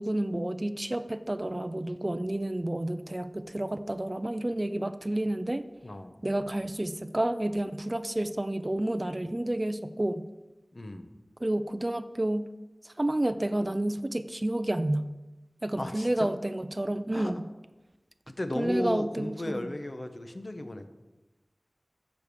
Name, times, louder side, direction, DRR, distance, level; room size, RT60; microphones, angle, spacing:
voice 1, 0.0-5.7 6.2-10.2 11.4-12.5 12.8-15.0 15.6-17.4 18.6-19.7, right 1 dB, 30° right, 11 dB, 0.4 m, -30 dB
voice 2, 5.8-6.2 10.7-11.1 15.8-16.3 17.1-17.3 18.3-20.9, left 1 dB, 50° left, 7 dB, 0.8 m, -35 dB
7.0 x 4.6 x 6.7 m, 1.1 s
wide cardioid pair, 50°, 0 cm